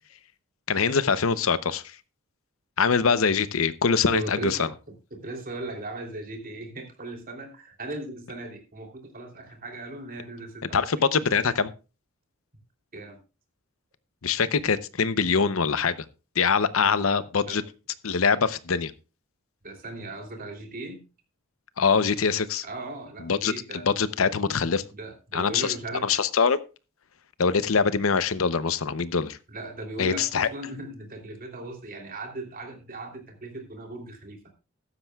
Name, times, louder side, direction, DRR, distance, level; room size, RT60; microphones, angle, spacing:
voice 1, 0.7-2.0 2.8-4.7 10.7-11.7 14.2-16.0 16.4-17.6 18.0-18.9 21.8-22.6 23.2-23.5 23.8-24.8 25.3-25.7 26.0-26.6 27.4-29.4 30.0-30.5, left 5 dB, 70° left, 15 dB, 0.7 m, -23 dB
voice 2, 4.0-4.7 5.1-11.0 12.9-13.2 17.1-17.6 19.6-21.0 22.2-22.3 22.6-23.8 24.9-26.0 29.5-34.5, right 2 dB, 45° right, 3 dB, 3.1 m, -38 dB
15.0 x 12.5 x 2.3 m, 0.31 s
head